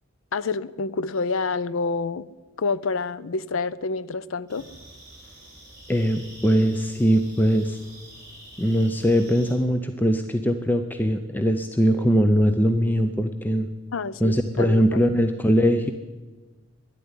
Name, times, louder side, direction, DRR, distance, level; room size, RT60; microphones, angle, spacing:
voice 1, 0.3-2.3 2.6-4.6 13.9-15.0, left 4 dB, 70° left, 17 dB, 0.5 m, -28 dB
sound 1, 4.5-9.5, right 1 dB, 15° right, 5.7 m, -47 dB
voice 2, 5.9-7.8 8.6-13.7 14.2-15.9, equal, 10° left, 7 dB, 0.5 m, -21 dB
11.5 x 10.5 x 9.7 m, 1.3 s
head